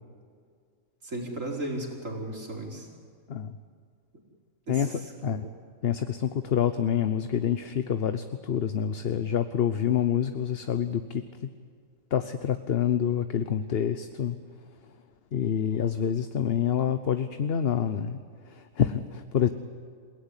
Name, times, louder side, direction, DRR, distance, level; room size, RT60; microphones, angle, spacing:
voice 1, 1.0-2.9 4.7-4.8, right 1 dB, 70° right, -1 dB, 4.8 m, -34 dB
voice 2, 4.7-5.4 5.8-11.5 12.1-14.4 14.8-15.0 15.3-19.5, left 8 dB, 50° left, 10 dB, 0.9 m, -27 dB
27.5 x 17.5 x 9.8 m, 2.1 s
omnidirectional pair, 1.4 m